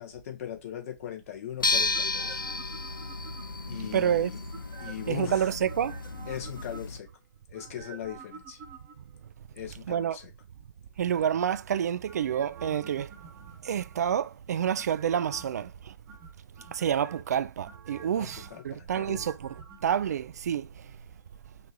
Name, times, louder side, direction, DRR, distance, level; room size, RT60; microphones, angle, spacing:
voice 1, 0.0-2.4 3.6-4.4 4.8-5.5 6.3-7.1 7.5-8.6 9.5-10.3 18.1-19.2, left 10 dB, 45° left, 1.2 m, -39 dB
sound 1, 1.6-7.0, left 3 dB, 85° left, 0.5 m, -33 dB
sound 2, 1.9-3.8 4.5-5.2 5.7-7.1 7.5-9.2 12.0-14.2 14.8-15.7 16.1-17.2 17.6-20.0 20.3-20.4, right 5 dB, 20° right, 1.0 m, -49 dB
voice 2, 3.9-4.3 5.1-6.0 9.9-10.2 11.0-13.1 13.6-15.9 16.7-19.5 19.8-20.7, right 9 dB, 55° right, 0.3 m, -28 dB
5.3 x 2.8 x 3.0 m
figure-of-eight pair, 125°, 11 cm